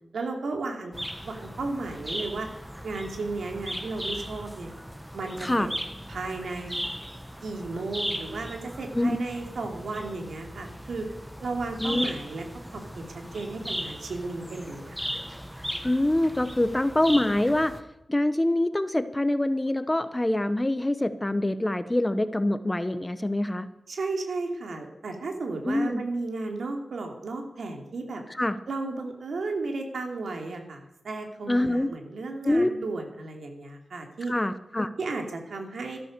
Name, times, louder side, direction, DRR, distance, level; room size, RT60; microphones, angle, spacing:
voice 1, 0.1-0.9 1.2-2.5 2.8-4.7 5.1-5.7 6.1-6.8 7.4-11.1 11.4-12.4 12.7-15.0 23.9-28.2 28.7-34.3 35.0-36.0, right 3 dB, 85° right, 3 dB, 2.8 m, -34 dB
sound 1, 0.9-17.8, equal, 5° right, 1.4 m, -37 dB
voice 2, 11.8-12.1 15.8-17.7 18.1-23.7 25.6-26.0 28.4-28.6 31.5-31.9 32.4-32.7 34.3-34.9, left 1 dB, 15° left, 12 dB, 0.9 m, -25 dB
13.5 x 12.5 x 6.7 m, 0.87 s
wide cardioid pair, 75°, 0 cm